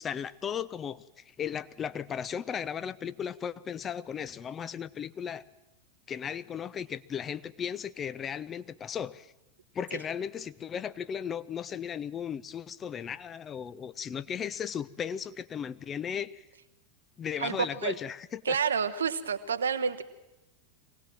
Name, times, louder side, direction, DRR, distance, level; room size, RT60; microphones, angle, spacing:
voice 1, 0.0-5.4 6.1-9.3 9.7-16.4 17.2-18.6, left 8 dB, 25° left, 15 dB, 0.7 m, -36 dB
voice 2, 17.4-18.0 18.4-20.0, right 6 dB, 70° right, 10 dB, 1.1 m, -29 dB
23.0 x 18.0 x 7.6 m, 0.97 s
figure-of-eight pair, 90°, 0 cm